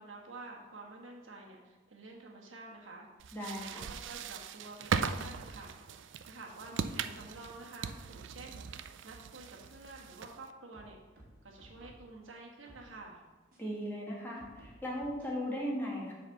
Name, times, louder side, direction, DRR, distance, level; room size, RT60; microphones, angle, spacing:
voice 1, 0.0-5.7 6.3-11.0 11.4-13.2, right 2 dB, 85° right, -1 dB, 1.4 m, -50 dB
sound 1, 3.2-10.5, right 6 dB, 70° right, 0.4 m, -39 dB
voice 2, 3.3-3.9 13.6-16.1, equal, 10° left, -4 dB, 1.8 m, -37 dB
sound 2, 9.8-10.4 10.7-12.1 12.7-12.9 13.5-13.6 14.4-15.3, right 1 dB, 50° right, 2.1 m, -57 dB
7.2 x 4.2 x 6.4 m, 1.3 s
head